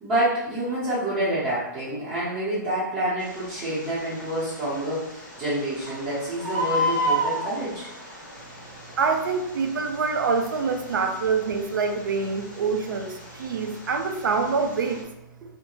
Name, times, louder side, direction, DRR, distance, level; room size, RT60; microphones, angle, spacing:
voice 1, 0.0-7.9, right 1 dB, 15° right, -14 dB, 0.9 m, -27 dB
Bird, 3.2-15.0, equal, 15° left, 0.8 m, -34 dB
voice 2, 9.0-15.1, right 5 dB, 80° right, 5 dB, 0.5 m, -25 dB
2.7 x 2.1 x 3.1 m, 0.84 s
hypercardioid pair, 165°, 11 cm